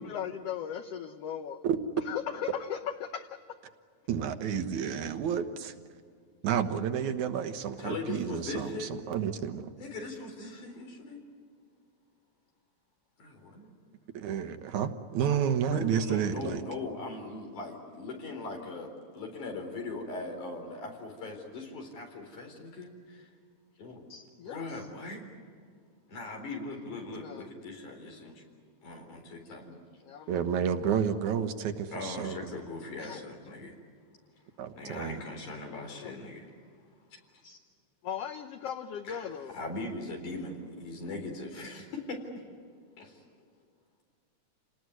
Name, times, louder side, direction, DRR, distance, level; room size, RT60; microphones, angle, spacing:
voice 1, 0.0-1.6 2.0-3.4 24.4-24.9 27.1-27.5 30.0-30.4 33.0-33.2 36.0-36.2 38.0-39.5, left 8 dB, 65° left, 7 dB, 1.7 m, -38 dB
voice 2, 4.1-5.7 6.4-9.7 14.1-16.6 30.3-32.4 34.6-35.1, right 8 dB, 80° right, 8 dB, 2.6 m, -30 dB
voice 3, 7.8-8.9 9.8-11.2 13.2-13.7 15.6-23.3 23.8-25.3 26.1-28.4 28.8-29.8 31.9-33.8 34.8-36.5 37.4-37.6 39.1-42.2 43.0-43.2, left 3 dB, 85° left, 3 dB, 5.5 m, -40 dB
28.5 x 19.5 x 9.5 m, 2.1 s
omnidirectional pair, 3.4 m